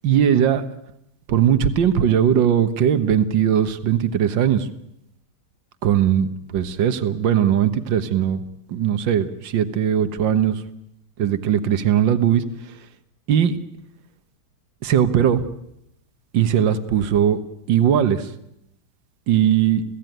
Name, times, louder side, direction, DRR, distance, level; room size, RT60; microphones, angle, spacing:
voice 1, 0.0-0.6 1.3-4.7 5.8-8.4 8.7-10.6 11.2-12.4 13.3-13.6 14.8-15.4 16.3-17.4 17.7-18.3 19.3-19.8, right 9 dB, 60° right, 11 dB, 1.9 m, -19 dB
29.0 x 16.5 x 9.3 m, 0.82 s
omnidirectional pair, 2.4 m